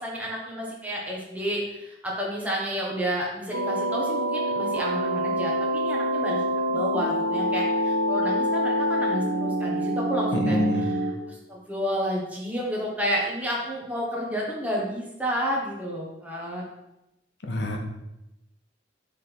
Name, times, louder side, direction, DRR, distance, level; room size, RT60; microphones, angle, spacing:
voice 1, 0.0-16.6, equal, 10° right, -4 dB, 1.2 m, -31 dB
sound 1, 3.5-11.1, equal, 90° right, 0.8 m, -26 dB
voice 2, 10.3-10.9 17.5-17.8, left 1 dB, 65° left, 2 dB, 0.8 m, -25 dB
5.9 x 3.6 x 4.5 m, 0.90 s
head